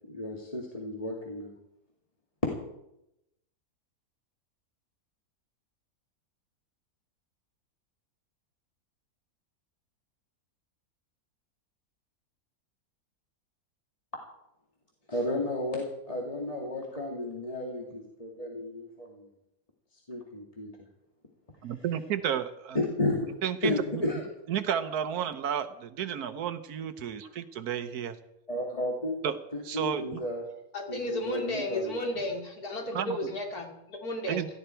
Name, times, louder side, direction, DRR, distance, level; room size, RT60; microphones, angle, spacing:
voice 1, 0.1-1.5 15.1-19.2 20.1-20.7 22.7-23.3 23.6-24.2 28.5-29.2 29.5-30.4 30.9-32.0, left 1 dB, 25° left, -2 dB, 2.2 m, -32 dB
voice 2, 21.6-22.8 23.4-24.0 24.5-28.2 29.2-29.4 29.6-30.2 32.9-33.2 34.3-34.5, right 9 dB, 85° right, 10 dB, 1.4 m, -32 dB
voice 3, 30.7-34.5, left 1 dB, 80° left, 1 dB, 3.3 m, -33 dB
18.0 x 14.5 x 4.5 m, 0.84 s
omnidirectional pair, 1.6 m